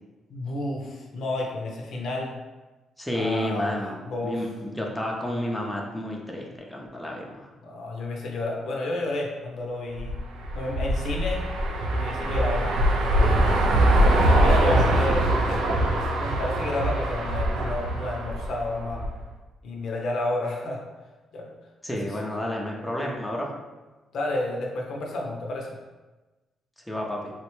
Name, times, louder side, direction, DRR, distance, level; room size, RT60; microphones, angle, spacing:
voice 1, 0.3-2.3 3.1-4.5 7.6-10.2 10.5-11.4 11.9-13.4 13.8-13.9 14.4-15.6 16.2-19.1 19.6-20.8 21.3-21.5 24.1-25.8, left 2 dB, 65° left, -1 dB, 0.6 m, -31 dB
voice 2, 3.0-4.0 4.2-7.5 14.6-15.2 21.8-23.5 26.8-27.3, left 1 dB, 5° left, -2 dB, 0.5 m, -31 dB
sound 1, 10.0-19.2, right 1 dB, 85° right, 0.4 m, -23 dB
3.7 x 2.1 x 3.0 m, 1.2 s
cardioid pair, 90°, 0 cm